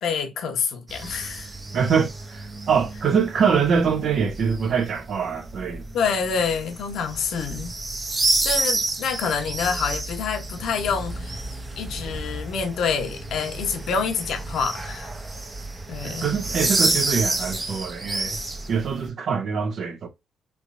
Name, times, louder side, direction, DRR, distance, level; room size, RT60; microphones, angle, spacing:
voice 1, 0.0-1.5 5.9-7.8 8.2-11.4 11.8-15.1 15.9-16.3, left 6 dB, 75° left, 0.9 m, -27 dB
sound 1, 0.9-19.1, right 2 dB, 25° right, 0.7 m, -30 dB
voice 2, 1.7-5.8 16.0-18.4 18.7-20.1, right 6 dB, 60° right, 0.8 m, -24 dB
3.3 x 3.1 x 2.5 m
cardioid pair, 90°, 0 cm